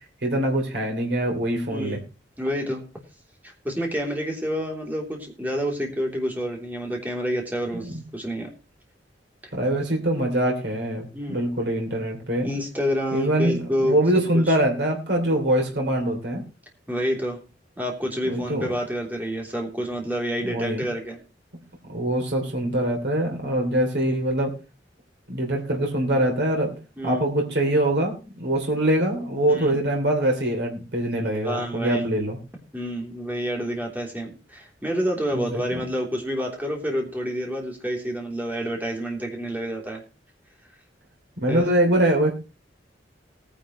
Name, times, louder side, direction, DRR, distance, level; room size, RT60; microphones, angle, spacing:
voice 1, 0.2-2.0 7.7-8.0 9.5-12.5 13.1-16.4 18.2-18.7 20.4-20.8 21.9-24.5 25.3-26.7 27.0-32.4 35.3-35.8 41.4-42.3, right 1 dB, 65° right, 1 dB, 3.1 m, -23 dB
voice 2, 2.4-2.8 3.6-8.5 11.1-11.5 12.4-14.0 14.3-14.5 16.9-17.4 17.8-21.2 27.0-27.2 29.5-29.7 31.4-32.0 32.7-40.0 41.5-41.7, equal, 10° right, 0 dB, 3.3 m, -28 dB
18.5 x 10.0 x 3.2 m, 0.31 s
head